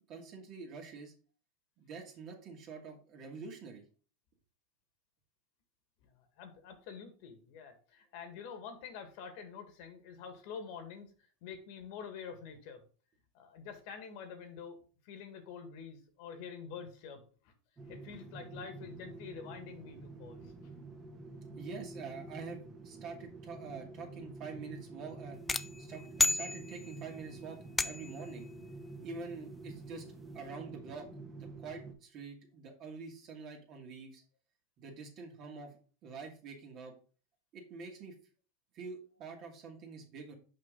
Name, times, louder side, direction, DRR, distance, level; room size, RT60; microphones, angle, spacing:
voice 1, 0.1-1.1 1.8-3.8 21.6-25.4 25.8-28.5 29.0-30.0 30.3-31.1 31.4-34.2 34.8-36.9 37.5-38.1 38.7-40.3, right 4 dB, 45° right, 2 dB, 2.1 m, -46 dB
voice 2, 6.0-11.1 11.4-12.8 13.3-14.8 15.0-17.5 17.9-20.7, left 6 dB, 65° left, 7 dB, 1.6 m, -47 dB
sound 1, 17.8-31.9, right 2 dB, 25° right, 1.4 m, -49 dB
sound 2, 25.5-27.1 27.8-28.3, left 3 dB, 15° left, 0.4 m, -32 dB
5.7 x 5.2 x 3.8 m, 0.38 s
supercardioid pair, 120°, 0 cm